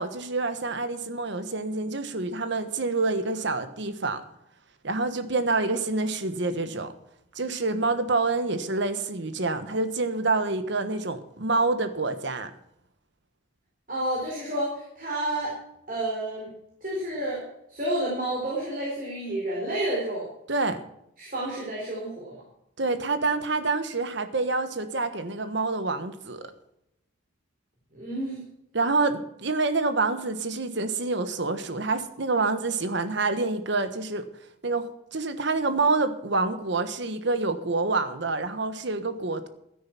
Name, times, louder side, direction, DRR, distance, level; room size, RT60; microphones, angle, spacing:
voice 1, 0.0-4.2 4.8-6.9 7.3-12.5 20.5-20.8 22.8-26.5 28.7-34.2 34.6-39.5, right 3 dB, 60° right, 10 dB, 1.3 m, -27 dB
voice 2, 13.9-15.6 15.9-16.5 16.8-17.4 17.7-20.3 21.2-22.4 27.9-28.4, right 1 dB, 45° right, -4 dB, 4.0 m, -30 dB
12.5 x 10.0 x 5.9 m, 0.80 s
head